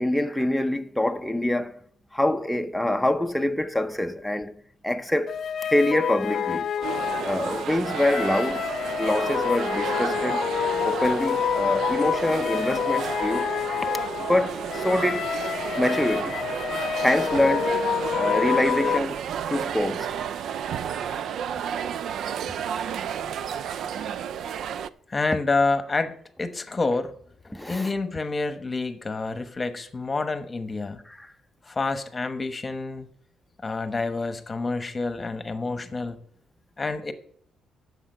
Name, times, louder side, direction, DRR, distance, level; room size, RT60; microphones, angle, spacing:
voice 1, 0.0-1.8 2.1-5.4 5.7-6.7 7.1-8.7 9.0-10.4 10.8-13.5 14.2-15.3 15.7-16.4 17.0-17.7 18.1-19.2 19.5-20.1 21.0-21.3 27.5-27.9 31.1-31.3, left 1 dB, 5° left, 0.6 m, -25 dB
sound 1, 5.3-19.0, left 8 dB, 60° left, 0.7 m, -28 dB
sound 2, 6.8-24.9, right 8 dB, 70° right, 0.4 m, -31 dB
voice 2, 25.1-26.1 26.4-27.1 27.7-31.0 31.7-33.1 33.6-36.2 36.8-37.1, left 3 dB, 25° left, 1.1 m, -28 dB
10.0 x 7.3 x 5.5 m
cardioid pair, 90°, 0 cm